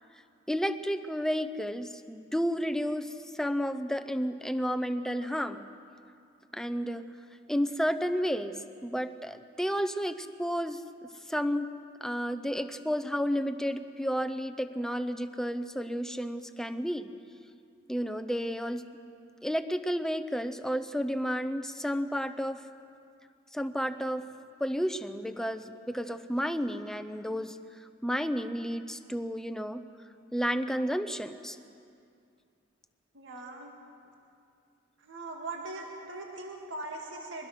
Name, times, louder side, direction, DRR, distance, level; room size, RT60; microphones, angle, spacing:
voice 1, 0.5-5.6 6.5-7.1 7.5-8.6 8.8-10.8 11.3-11.7 12.0-17.1 17.9-18.9 19.4-22.6 23.5-24.2 24.6-27.6 28.0-29.8 30.3-31.6, equal, 5° left, 9 dB, 0.7 m, -31 dB
voice 2, 33.1-33.7 35.0-37.5, right 2 dB, 70° right, 0 dB, 2.1 m, -40 dB
22.5 x 20.0 x 6.0 m, 2.4 s
head